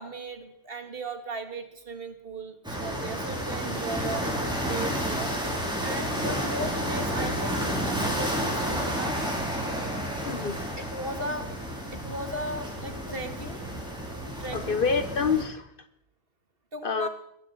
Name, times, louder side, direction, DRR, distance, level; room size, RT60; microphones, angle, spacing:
voice 1, 0.0-5.3 5.8-9.2 10.9-11.5 11.9-13.6 14.4-14.8 16.7-17.1, right 2 dB, 55° right, 6 dB, 2.2 m, -37 dB
sound 1, 2.6-15.4, equal, 5° right, 4.0 m, -31 dB
voice 2, 10.3-10.6 14.5-15.7 16.8-17.1, left 5 dB, 50° left, 10 dB, 1.3 m, -27 dB
21.5 x 7.8 x 8.1 m, 0.78 s
omnidirectional pair, 1.2 m